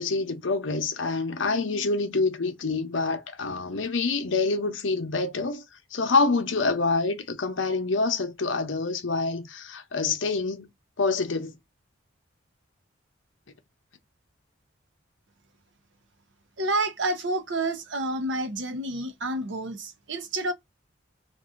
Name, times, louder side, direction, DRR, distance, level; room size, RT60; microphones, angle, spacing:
voice 1, 0.0-5.6 5.9-10.7 11.0-11.6, left 3 dB, 75° left, 0.8 m, -26 dB
voice 2, 16.6-20.5, right 2 dB, 65° right, 0.8 m, -29 dB
2.7 x 2.3 x 3.5 m
head